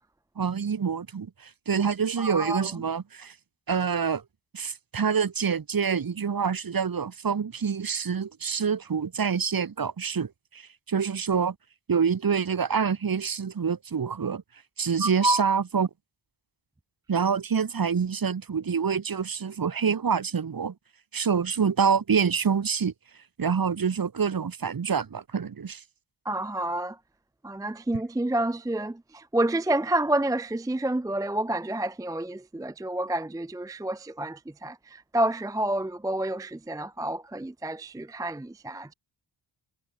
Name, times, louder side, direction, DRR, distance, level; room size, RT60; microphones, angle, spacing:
voice 1, 0.4-3.3 3.7-4.2 4.5-11.5 11.9-14.4 14.8-15.9 17.1-20.7 21.1-22.9 23.4-25.8, right 6 dB, 45° right, 3.2 m, -26 dB
voice 2, 2.2-2.8 15.0-15.6 26.3-27.0 27.4-38.9, right 1 dB, 10° right, 0.6 m, -29 dB
wide cardioid pair, 145°, 47 cm